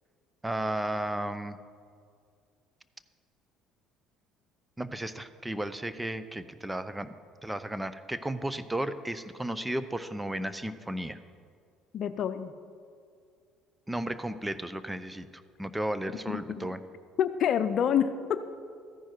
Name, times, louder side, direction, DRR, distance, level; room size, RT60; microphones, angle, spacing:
voice 1, 0.4-1.6 4.8-7.2 7.4-11.2 13.9-16.8, right 1 dB, 10° right, 12 dB, 0.7 m, -34 dB
voice 2, 11.9-12.5 16.6-16.7 17.2-18.4, left 8 dB, 60° left, 11 dB, 0.6 m, -27 dB
14.0 x 10.5 x 4.6 m, 2.2 s
supercardioid pair, 70°, 0 cm